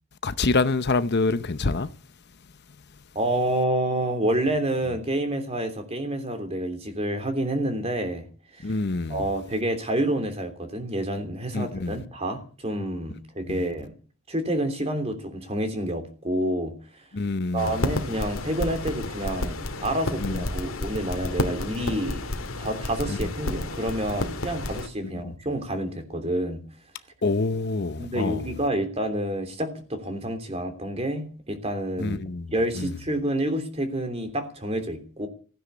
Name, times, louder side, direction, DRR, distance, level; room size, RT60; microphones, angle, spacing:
voice 1, 0.2-1.9 8.6-9.2 11.5-12.0 17.1-17.7 20.2-20.3 23.1-23.2 27.2-28.4 32.0-32.5 32.8-32.9, left 3 dB, 50° left, 0.8 m, -26 dB
voice 2, 3.1-8.3 8.5-8.8 9.1-13.9 14.3-16.7 17.5-22.2 22.6-26.6 28.0-32.2 32.5-35.3, right 1 dB, 30° right, 3.2 m, -28 dB
sound 1, 17.6-24.9, left 2 dB, 65° left, 2.2 m, -31 dB
16.5 x 10.0 x 8.3 m
head